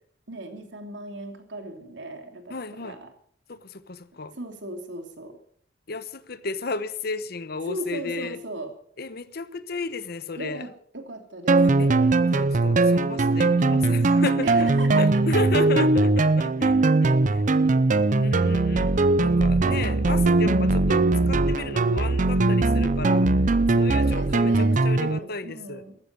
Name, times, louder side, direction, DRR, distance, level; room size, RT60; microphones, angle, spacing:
voice 1, 0.3-3.1 4.3-5.4 7.7-8.7 10.4-12.0 14.4-15.4 16.0-16.1 17.0-17.9 20.4-20.7 23.9-26.0, right 2 dB, 85° right, 5 dB, 3.0 m, -38 dB
voice 2, 2.5-3.0 3.5-4.3 5.9-8.4 9.0-10.7 11.8-11.9 12.3-17.4 18.1-23.3 23.7-25.8, left 3 dB, 60° left, 13 dB, 1.1 m, -33 dB
sound 1, 11.5-25.2, right 2 dB, 45° right, 0.6 m, -20 dB
14.5 x 13.5 x 6.8 m, 0.62 s
head